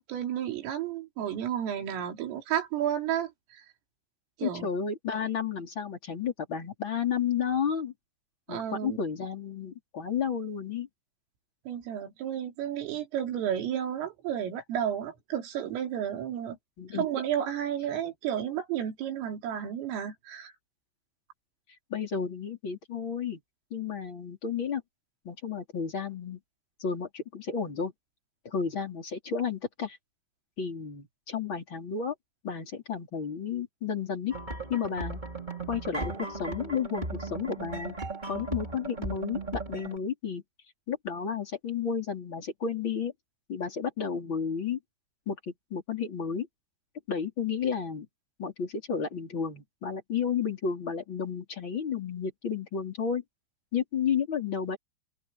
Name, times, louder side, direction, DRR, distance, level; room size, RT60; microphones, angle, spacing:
voice 1, 0.0-3.6 4.4-4.7 8.5-9.0 11.7-16.6 16.9-20.5, right 10 dB, 90° right, 5.9 m, -32 dB
voice 2, 4.4-7.9 8.5-10.9 16.8-17.1 21.9-23.4 23.7-24.8 25.2-26.4 26.8-27.9 28.4-30.0 30.6-32.1 32.4-34.3 34.7-35.2 35.7-38.0 38.3-40.4 40.9-43.1 43.5-44.8 45.3-46.5 47.1-48.1 48.4-53.2 53.7-54.8, left 7 dB, 25° left, 4.3 m, -32 dB
sound 1, 34.3-40.0, right 2 dB, 10° right, 2.4 m, -36 dB
omnidirectional pair, 5.7 m